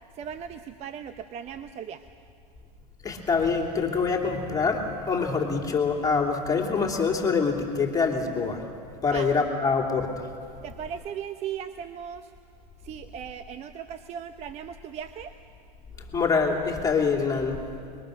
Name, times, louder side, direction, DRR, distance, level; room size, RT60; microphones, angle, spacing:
voice 1, 0.1-2.0 9.1-9.3 10.6-12.3 12.8-15.3, right 8 dB, 30° right, 9 dB, 0.9 m, -37 dB
voice 2, 3.0-8.7 9.0-10.2 16.1-17.6, left 5 dB, 15° left, 1 dB, 3.0 m, -25 dB
30.0 x 21.5 x 6.6 m, 2.4 s
hypercardioid pair, 120°, 21 cm